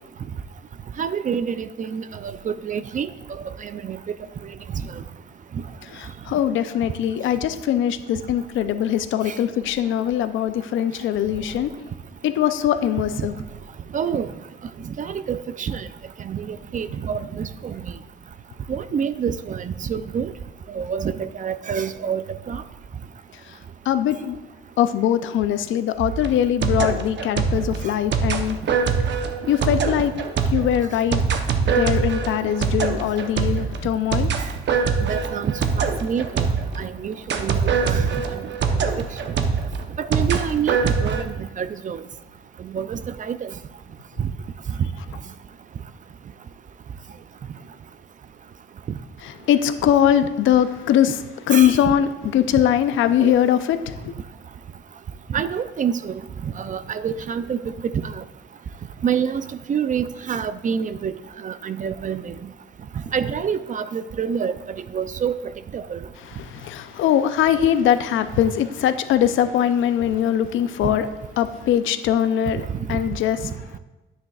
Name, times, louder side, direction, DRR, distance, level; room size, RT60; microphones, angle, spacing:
voice 1, 1.0-4.0 4.7-5.0 9.3-9.4 13.2-13.3 13.9-14.3 14.8-15.9 16.2-17.8 18.7-20.3 20.7-22.6 34.4-34.5 35.0-36.5 36.8-38.4 39.0-39.4 40.0-42.0 42.6-43.5 44.2-44.3 48.9-49.0 51.5-51.9 53.2-53.4 55.3-58.2 59.0-61.1 61.4-62.5 63.1-65.4 65.7-66.0 67.8-68.0 72.7-73.0 73.4-73.5, right 7 dB, 40° right, 13 dB, 0.5 m, -27 dB
voice 2, 5.9-11.7 12.2-13.3 23.9-24.4 24.8-28.6 29.5-30.1 30.5-31.2 31.6-34.3 49.2-51.2 51.5-54.1 66.4-71.1 71.4-73.4, left 10 dB, 80° left, 10 dB, 0.6 m, -21 dB
sound 1, 26.0-36.9 37.3-41.2, right 5 dB, 65° right, 0.9 m, -23 dB
10.0 x 9.2 x 2.4 m, 1.1 s
cardioid pair, 90°, 20 cm